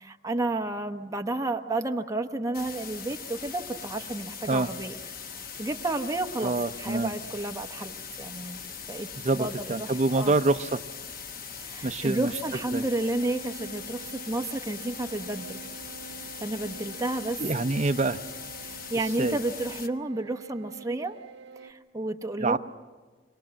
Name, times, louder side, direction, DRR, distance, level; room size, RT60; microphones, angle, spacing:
voice 1, 0.0-5.0 5.6-10.4 11.6-15.6 16.3-17.4 18.6-21.2 21.6-22.6, right 2 dB, 20° right, 5 dB, 1.0 m, -31 dB
sound 1, 2.5-19.9, left 6 dB, 55° left, 1.0 m, -41 dB
voice 2, 6.4-7.1 9.2-10.8 11.8-12.3 12.7-12.8 17.4-18.2 19.2-19.4 22.4-22.6, right 3 dB, 40° right, 8 dB, 0.6 m, -26 dB
sound 2, 13.0-21.7, right 7 dB, 70° right, 1.4 m, -47 dB
25.0 x 19.0 x 7.5 m, 1.4 s
head